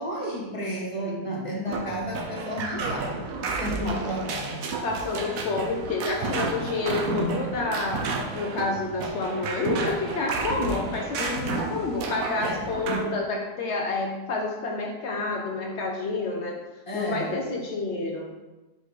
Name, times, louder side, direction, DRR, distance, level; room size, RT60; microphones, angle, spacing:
voice 1, 0.0-3.3 3.5-4.7 6.2-6.8 12.4-12.6 16.9-17.3, equal, 20° left, -3 dB, 1.1 m, -32 dB
sound 1, 1.7-13.0, right 4 dB, 60° right, 1.0 m, -31 dB
voice 2, 4.8-8.0 8.3-16.6 16.9-18.3, left 3 dB, 80° left, 0 dB, 0.6 m, -29 dB
5.5 x 4.6 x 4.0 m, 1.1 s
omnidirectional pair, 2.0 m